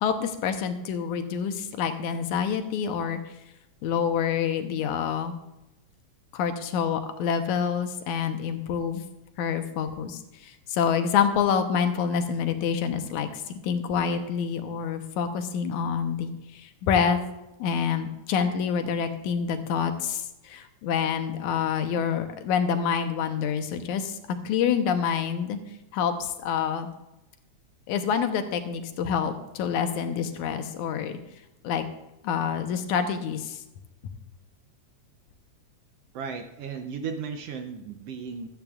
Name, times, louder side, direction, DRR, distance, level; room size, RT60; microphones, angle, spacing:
voice 1, 0.0-3.2 3.8-5.4 6.3-9.0 9.4-17.2 17.6-24.2 24.4-25.6 25.9-26.9 27.9-31.2 31.6-31.9 32.2-33.6, left 7 dB, 90° left, 7 dB, 2.4 m, -27 dB
voice 2, 36.1-38.5, right 5 dB, 70° right, 6 dB, 1.6 m, -35 dB
16.0 x 12.0 x 2.4 m, 0.95 s
omnidirectional pair, 3.3 m